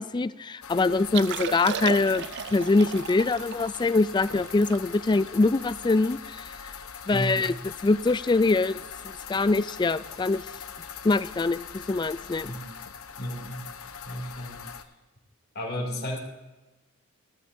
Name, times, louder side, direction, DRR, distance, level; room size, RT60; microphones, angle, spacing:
voice 1, 0.0-6.6 7.1-7.5 7.8-8.8 9.3-10.4 11.0-12.5, left 3 dB, 20° left, 15 dB, 0.3 m, -24 dB
sound 1, 0.6-14.8, left 7 dB, 85° left, 0.9 m, -42 dB
Liquid, 1.0-6.4 6.9-7.0 7.2-7.5 7.8-8.1 8.7-8.9 10.3-10.4, right 8 dB, 55° right, 0.4 m, -36 dB
voice 2, 7.1-7.6 12.4-12.7 13.1-13.7 14.0-14.6 15.5-16.2, equal, 50° left, 0 dB, 2.8 m, -33 dB
16.0 x 13.5 x 2.7 m, 1.1 s
head